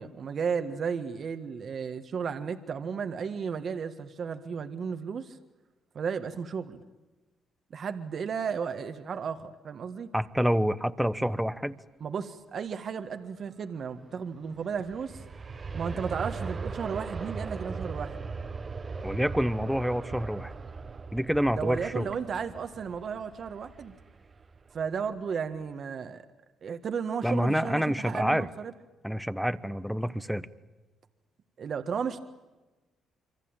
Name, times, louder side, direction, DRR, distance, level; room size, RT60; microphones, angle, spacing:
voice 1, 0.0-5.4 5.9-6.8 7.7-10.1 12.0-15.2 15.7-18.3 21.5-23.9 24.7-26.2 26.6-28.7 31.6-32.2, right 6 dB, 55° right, 8 dB, 1.6 m, -34 dB
voice 2, 10.1-11.8 19.0-20.5 21.1-22.1 27.2-28.5 29.0-30.5, equal, ahead, 13 dB, 1.1 m, -27 dB
Aircraft, 14.4-25.2 25.6-25.7, right 4 dB, 35° right, 1.2 m, -39 dB
27.0 x 24.5 x 9.0 m, 1.1 s
cardioid pair, 90°, 0 cm